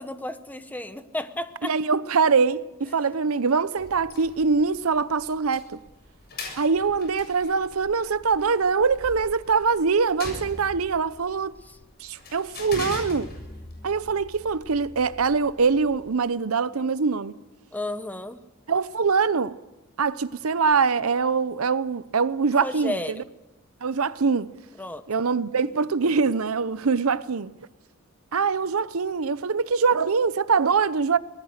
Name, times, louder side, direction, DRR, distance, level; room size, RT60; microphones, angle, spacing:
voice 1, 0.0-1.7 17.7-18.4 22.6-23.2 24.8-25.0, left 1 dB, 10° left, 1.0 m, -32 dB
voice 2, 1.6-5.8 6.6-11.6 12.0-13.3 13.8-17.4 18.7-19.6 20.0-23.2 23.8-24.5 25.1-27.5 28.3-31.2, right 5 dB, 85° right, 0.7 m, -23 dB
sound 1, 3.8-16.2, left 2 dB, 50° left, 7.4 m, -42 dB
25.0 x 20.0 x 6.6 m
head